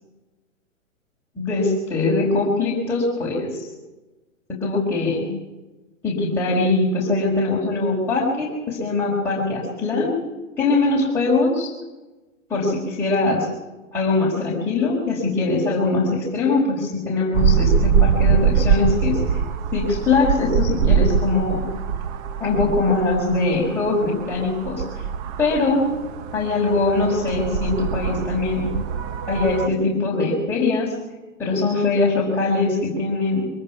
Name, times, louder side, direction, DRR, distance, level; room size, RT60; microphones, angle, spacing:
voice 1, 1.4-3.7 4.5-5.3 6.0-10.1 10.6-11.7 12.5-13.5 13.9-19.4 19.7-21.7 22.4-24.9 25.4-25.9 26.3-28.8 29.3-31.0 31.4-33.5, left 3 dB, 5° left, -7 dB, 5.1 m, -22 dB
sound 1, 17.3-29.7, right 7 dB, 30° right, 0.9 m, -23 dB
23.5 x 19.0 x 6.0 m, 1.1 s
hypercardioid pair, 130°, 40 cm